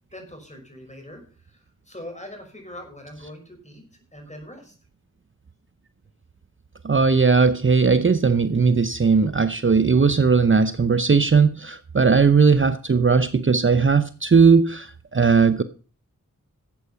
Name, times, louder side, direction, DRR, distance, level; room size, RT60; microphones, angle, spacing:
voice 1, 0.1-3.8 4.1-4.8, left 1 dB, 20° left, 3 dB, 5.9 m, -42 dB
voice 2, 6.8-15.6, right 5 dB, 35° right, 12 dB, 0.7 m, -18 dB
13.5 x 7.9 x 5.6 m, 0.38 s
cardioid pair, 40°, 33 cm